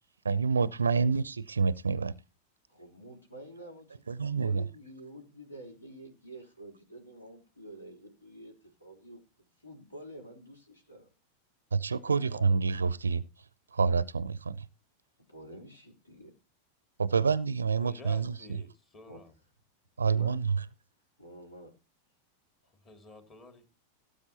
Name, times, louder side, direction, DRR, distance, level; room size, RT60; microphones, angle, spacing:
voice 1, 0.2-2.1 4.1-4.6 11.7-13.2 13.7-14.7 17.0-18.3 20.0-20.6, right 5 dB, 75° right, 0.5 m, -27 dB
voice 2, 2.7-11.1 12.0-12.8 15.3-16.3 19.1-19.2 20.1-20.5 21.2-21.7, right 1 dB, 80° left, 3.7 m, -49 dB
voice 3, 17.8-19.3 22.7-23.7, left 3 dB, 30° left, 2.4 m, -51 dB
17.5 x 8.3 x 2.9 m
figure-of-eight pair, 90°, 0 cm